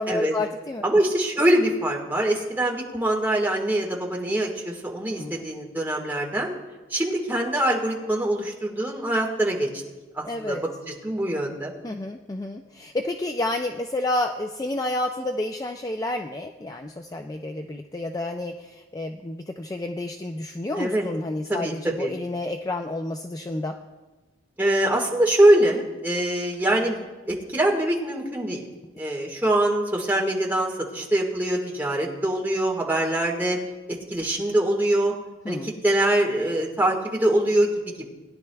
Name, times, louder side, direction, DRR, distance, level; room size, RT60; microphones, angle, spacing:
voice 1, 0.0-0.8 5.1-5.4 10.2-10.6 11.8-23.7 35.4-35.8, left 2 dB, 20° left, 4 dB, 0.4 m, -30 dB
voice 2, 0.8-6.5 6.9-9.7 10.1-10.6 10.9-11.7 20.7-21.0 21.5-22.1 24.6-28.6 29.0-33.6 34.1-35.1 35.5-37.7, right 1 dB, 10° right, -2 dB, 1.7 m, -23 dB
21.0 x 10.5 x 2.3 m, 1.2 s
head